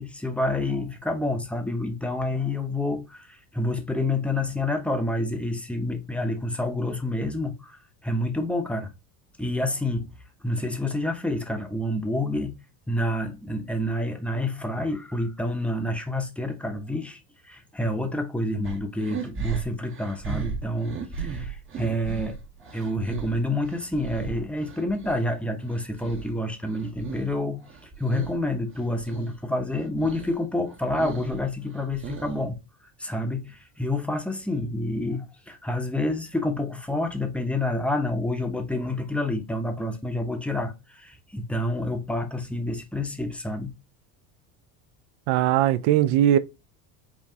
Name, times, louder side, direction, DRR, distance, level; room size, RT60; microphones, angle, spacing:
voice 1, 0.0-8.9 9.4-10.1 10.4-12.6 12.9-17.2 17.5-22.4 22.7-32.6 33.0-43.7, left 1 dB, 5° left, 0.7 m, -28 dB
sound 1, 18.6-25.2 25.6-27.4 27.6-28.4 28.7-29.3 29.7-30.3 30.7-32.5, right 5 dB, 25° right, 0.8 m, -36 dB
voice 2, 45.3-46.4, right 12 dB, 65° right, 0.6 m, -20 dB
5.8 x 2.4 x 2.7 m
hypercardioid pair, 90°, 48 cm